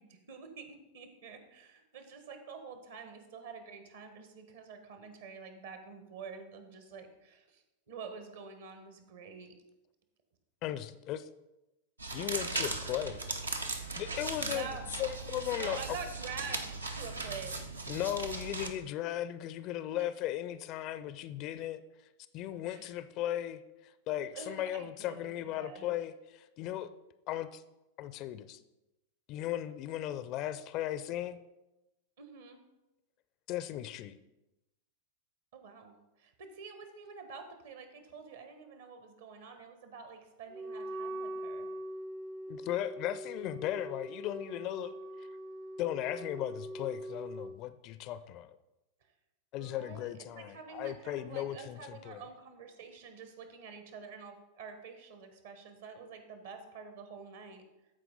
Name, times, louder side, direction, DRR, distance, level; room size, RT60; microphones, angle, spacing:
voice 1, 0.0-9.5 14.4-14.9 15.5-17.6 22.7-22.9 24.3-25.9 32.2-32.6 35.5-41.7 49.6-57.6, right 5 dB, 60° right, 7 dB, 1.2 m, -47 dB
voice 2, 10.6-11.3 12.1-13.2 14.0-14.7 15.0-15.8 17.9-21.8 22.3-26.9 27.3-27.6 28.0-28.6 29.3-31.4 33.5-34.1 42.5-44.9 45.8-48.6 49.5-52.2, left 12 dB, 40° left, 14 dB, 0.4 m, -37 dB
sound 1, 12.0-18.7, right 3 dB, 80° right, 0.7 m, -38 dB
Wind instrument woodwind instrument, 40.5-47.6, right 1 dB, 20° right, 0.4 m, -42 dB
14.0 x 4.6 x 3.9 m, 0.97 s
figure-of-eight pair, 90°, 0 cm